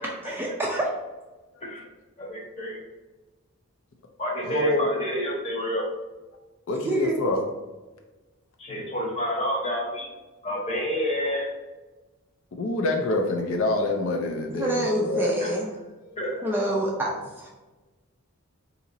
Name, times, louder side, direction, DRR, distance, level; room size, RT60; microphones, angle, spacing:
voice 1, 0.2-0.9 6.9-7.2 14.6-15.7 16.4-17.5, right 1 dB, 10° right, -3 dB, 0.3 m, -27 dB
voice 2, 2.2-2.8 4.2-5.8 8.6-10.1 10.4-11.5 16.2-16.4, equal, 30° left, -2 dB, 0.9 m, -29 dB
voice 3, 4.4-4.9 6.7-7.4 12.6-15.3 16.0-16.5, left 2 dB, 60° left, 2 dB, 0.4 m, -26 dB
4.0 x 2.8 x 2.6 m, 1.2 s
head